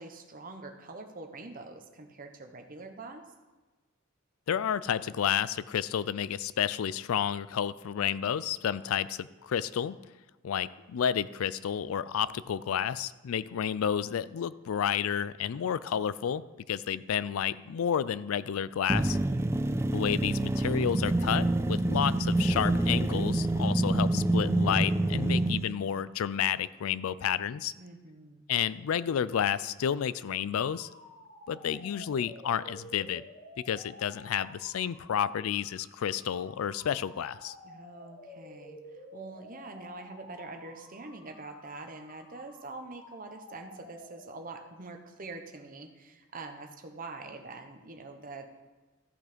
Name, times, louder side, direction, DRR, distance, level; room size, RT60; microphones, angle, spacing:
voice 1, 0.0-3.2 19.2-19.7 27.8-28.5 37.6-48.6, right 3 dB, 40° right, 5 dB, 1.0 m, -45 dB
voice 2, 4.5-10.0 10.4-19.2 19.9-27.7 28.5-30.9 31.5-33.2 33.7-37.5, left 8 dB, 80° left, 17 dB, 0.4 m, -31 dB
sound 1, 18.9-25.7, right 2 dB, 10° right, 0.3 m, -27 dB
sound 2, 30.1-44.7, left 1 dB, 55° left, 2.0 m, -52 dB
13.5 x 6.1 x 5.1 m, 1.2 s
head